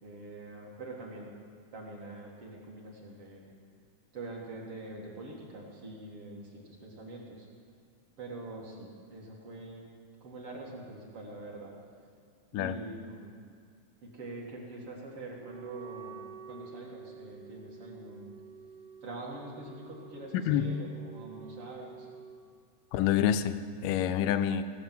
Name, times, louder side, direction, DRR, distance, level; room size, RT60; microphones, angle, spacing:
voice 1, 0.0-1.3 1.7-3.5 4.1-7.5 8.2-9.9 10.2-11.8 12.5-13.4 14.0-18.4 19.0-22.1, right 2 dB, 50° right, -2 dB, 2.4 m, -44 dB
Wind instrument woodwind instrument, 15.4-22.4, right 6 dB, 85° right, 3.0 m, -49 dB
voice 2, 20.3-20.6 22.9-24.6, left 10 dB, 90° left, 11 dB, 2.2 m, -27 dB
18.0 x 6.8 x 7.4 m, 2.2 s
omnidirectional pair, 3.7 m